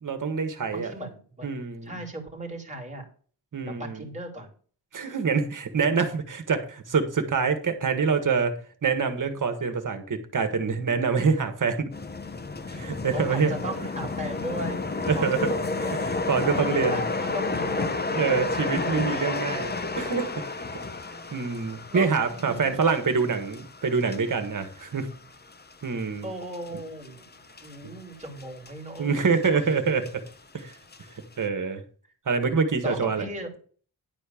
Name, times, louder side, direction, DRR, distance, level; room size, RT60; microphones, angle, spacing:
voice 1, 0.0-0.9 1.4-2.0 3.5-4.1 4.9-8.5 8.8-11.9 12.8-13.6 15.1-15.5 16.0-17.0 18.2-20.5 21.3-25.1 25.8-26.3 29.0-30.2 30.5-30.7 31.4-31.8 32.3-33.3, right 5 dB, 50° right, 7 dB, 1.7 m, -26 dB
voice 2, 0.7-1.5 1.8-3.1 3.6-4.5 12.7-12.8 13.1-14.8 15.1-16.1 16.4-17.9 18.9-19.1 19.9-20.2 21.9-22.9 26.2-29.8 32.8-33.5, right 1 dB, 15° right, 0 dB, 3.0 m, -37 dB
sound 1, 11.9-27.8 28.2-28.7 29.0-30.3 30.7-31.0, left 3 dB, 25° left, 0.8 m, -31 dB
11.0 x 4.4 x 7.2 m, 0.42 s
wide cardioid pair, 150°, 40 cm